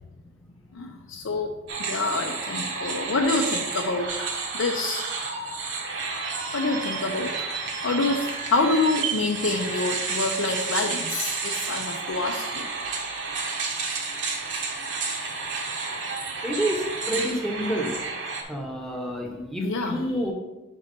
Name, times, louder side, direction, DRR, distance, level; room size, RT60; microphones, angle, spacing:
voice 1, 0.7-1.5 1.8-5.3 6.5-7.5 7.8-12.7 19.6-20.0, left 3 dB, 90° left, 2 dB, 0.5 m, -27 dB
sound 1, 1.7-18.4, right 4 dB, 65° right, 0.9 m, -31 dB
voice 2, 16.4-18.0 18.3-20.3, equal, ahead, 0 dB, 0.7 m, -28 dB
5.4 x 4.1 x 5.1 m, 1.1 s
head